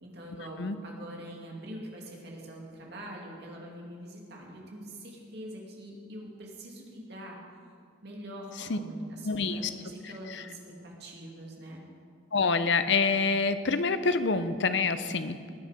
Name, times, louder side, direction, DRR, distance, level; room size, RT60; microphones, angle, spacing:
voice 1, 0.0-7.4 8.0-11.8, right 1 dB, 55° right, -2 dB, 2.5 m, -44 dB
voice 2, 9.2-9.7 10.3-10.4 12.3-15.5, left 4 dB, 60° left, 11 dB, 0.7 m, -27 dB
19.5 x 8.3 x 5.1 m, 2.2 s
head